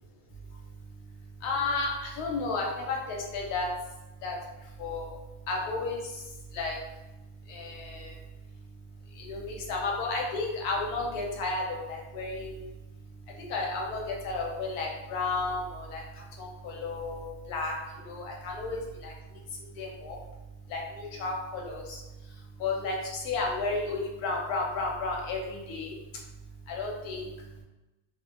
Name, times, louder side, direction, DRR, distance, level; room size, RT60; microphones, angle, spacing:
voice 1, 1.4-3.7 4.2-4.4 4.8-5.0 5.5-6.0 6.5-6.8 7.5-8.1 9.3-12.6 13.5-16.0 16.6-17.7 18.1-19.1 19.8-20.2 20.7-22.0 22.6-23.0 23.2-25.9 26.7-27.3, left 3 dB, 80° left, -1 dB, 1.1 m, -32 dB
2.5 x 2.1 x 2.5 m, 1.0 s
omnidirectional pair, 1.6 m